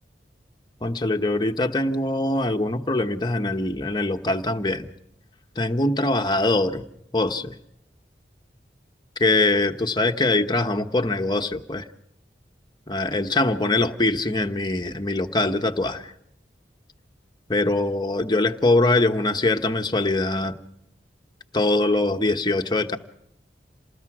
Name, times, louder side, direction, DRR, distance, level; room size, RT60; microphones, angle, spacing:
voice 1, 0.8-4.9 5.6-6.8 7.1-7.5 9.2-11.8 12.9-16.1 17.5-20.6 21.5-23.0, left 2 dB, 25° left, 6 dB, 1.1 m, -23 dB
28.0 x 20.0 x 4.8 m, 0.75 s
head